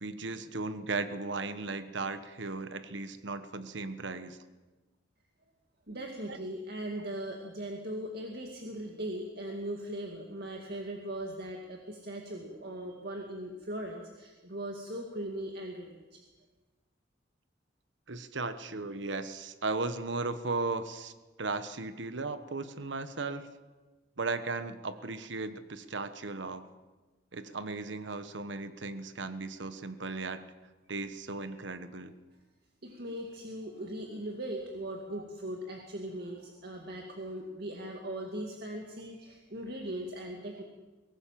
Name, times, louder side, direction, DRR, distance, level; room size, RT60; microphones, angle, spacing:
voice 1, 0.0-4.4 6.3-6.4 18.1-21.1 21.4-23.5 24.2-26.7 27.3-30.4 30.9-32.1 35.1-35.2, right 3 dB, 70° right, 11 dB, 1.2 m, -36 dB
voice 2, 5.9-15.9 32.8-40.6, right 1 dB, 55° right, 1 dB, 2.3 m, -39 dB
23.0 x 18.0 x 7.5 m, 1.2 s
head